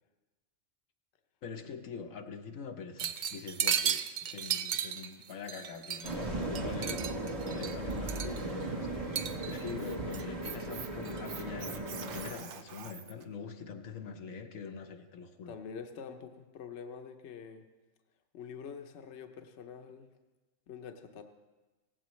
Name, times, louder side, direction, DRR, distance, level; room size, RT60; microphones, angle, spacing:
voice 1, 1.4-3.8 4.3-9.1 9.4-15.5, left 6 dB, 85° left, 4 dB, 1.3 m, -44 dB
sound 1, 3.0-6.2 6.6-8.6 9.1-9.7 10.1-10.7 11.1-11.6 12.0-12.6, right 8 dB, 85° right, 0.4 m, -35 dB
sound 2, 6.0-12.3, right 2 dB, 30° right, 1.0 m, -37 dB
Squeak, 9.0-13.2, right 7 dB, 55° right, 0.7 m, -46 dB
voice 2, 15.5-17.7 18.3-20.1 20.7-21.2, left 6 dB, 65° left, 5 dB, 1.0 m, -46 dB
17.5 x 15.5 x 3.1 m, 1.2 s
omnidirectional pair, 1.3 m